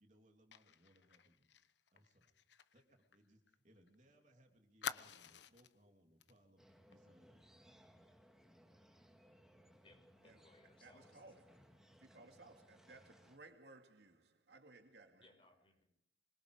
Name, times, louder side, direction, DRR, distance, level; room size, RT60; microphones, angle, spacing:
voice 1, 0.0-1.5 1.9-2.3 2.7-6.6 6.9-7.5, right 1 dB, 40° right, 3.2 m, -70 dB
Fire, 0.5-4.0 4.2-4.3 4.8-5.8 6.2-6.4 6.7-6.9, left 7 dB, 80° left, 1.0 m, -49 dB
sound 1, 6.6-13.4, equal, 5° right, 2.1 m, -66 dB
voice 2, 9.8-11.5 15.2-15.8, left 2 dB, 30° left, 5.9 m, -67 dB
voice 3, 10.8-15.2, right 2 dB, 70° right, 2.4 m, -61 dB
25.5 x 23.0 x 5.1 m
head